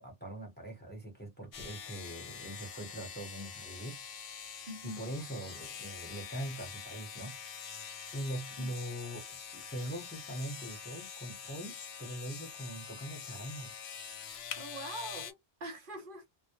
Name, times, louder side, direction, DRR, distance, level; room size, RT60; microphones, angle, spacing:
voice 1, 0.0-4.0 4.8-7.4 8.1-13.7, right 1 dB, 10° left, 0.9 m, -42 dB
sound 1, 1.5-15.3, left 7 dB, 80° left, 0.8 m, -45 dB
voice 2, 4.7-5.0 8.6-8.7 14.6-16.3, right 1 dB, 60° right, 0.8 m, -43 dB
2.1 x 2.1 x 2.8 m
omnidirectional pair, 1.0 m